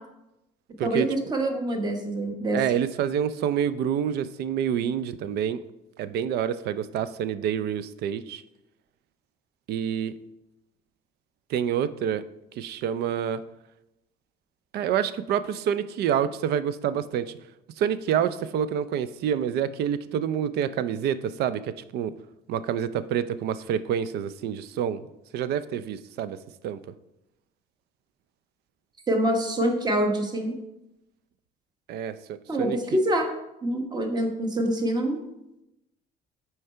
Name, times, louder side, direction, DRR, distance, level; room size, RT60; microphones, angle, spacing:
voice 1, 0.8-2.6 29.1-30.6 32.5-33.3 33.6-35.2, right 1 dB, 25° right, 4 dB, 1.1 m, -25 dB
voice 2, 2.5-5.6 6.0-8.4 9.7-10.1 11.5-12.2 12.6-13.4 14.7-17.3 17.8-22.1 22.5-25.0 25.3-26.4 26.6-26.8 31.9-33.0, right 9 dB, 75° right, 14 dB, 0.4 m, -27 dB
6.4 x 4.6 x 4.4 m, 0.90 s
cardioid pair, 110°, 17 cm